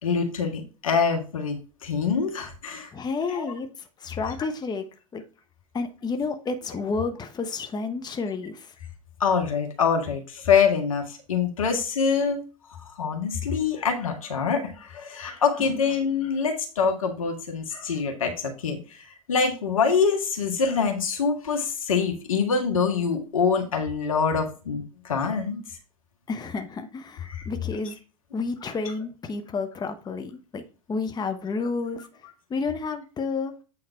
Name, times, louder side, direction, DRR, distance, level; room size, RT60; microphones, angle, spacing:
voice 1, 0.0-2.9 3.3-3.5 9.2-12.4 12.8-25.6 27.3-27.5, left 5 dB, 80° left, 4 dB, 1.7 m, -25 dB
voice 2, 2.9-3.7 4.0-4.8 5.1-5.2 5.7-8.7 26.3-28.0 28.3-30.6 30.9-32.0 32.5-33.5, left 4 dB, 25° left, 6 dB, 1.2 m, -30 dB
8.6 x 3.9 x 4.5 m, 0.34 s
hypercardioid pair, 85°, 17 cm